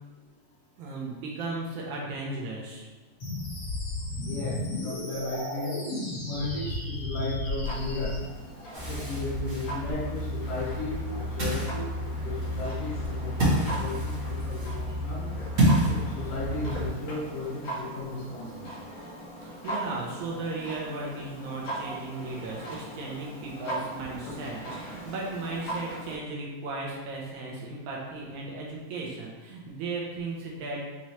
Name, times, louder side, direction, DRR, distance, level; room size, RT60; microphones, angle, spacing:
voice 1, 0.8-2.9 19.4-30.8, right 3 dB, 75° right, -3 dB, 1.8 m, -36 dB
sound 1, 3.2-8.2, left 2 dB, 45° left, 1.7 m, -33 dB
voice 2, 4.1-5.8 6.3-8.2 8.9-14.1 14.4-15.3 15.9-18.7, left 2 dB, 80° left, -6 dB, 1.3 m, -35 dB
Clock, 7.6-26.2, right 1 dB, 65° left, 2.8 m, -40 dB
Ocean, 8.7-16.9, equal, 55° right, 0.8 m, -29 dB
6.1 x 3.1 x 2.8 m, 1.2 s
omnidirectional pair, 4.0 m